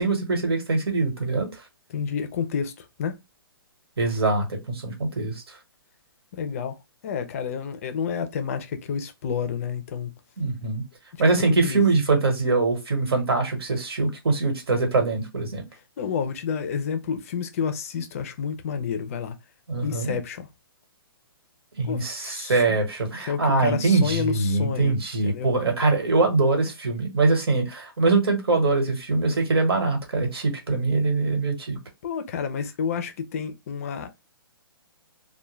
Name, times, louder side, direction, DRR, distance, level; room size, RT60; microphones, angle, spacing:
voice 1, 0.0-1.5 4.0-5.4 10.4-10.8 11.2-15.6 19.7-20.2 21.8-31.8, right 3 dB, 90° right, 1.2 m, -23 dB
voice 2, 1.9-3.2 6.3-6.8 7.0-10.1 11.1-11.2 11.6-11.8 16.0-19.4 19.8-20.5 21.8-22.8 23.3-25.0 25.2-25.5 32.0-34.2, left 6 dB, 35° left, 0.4 m, -30 dB
2.2 x 2.1 x 3.0 m
hypercardioid pair, 160°, 13 cm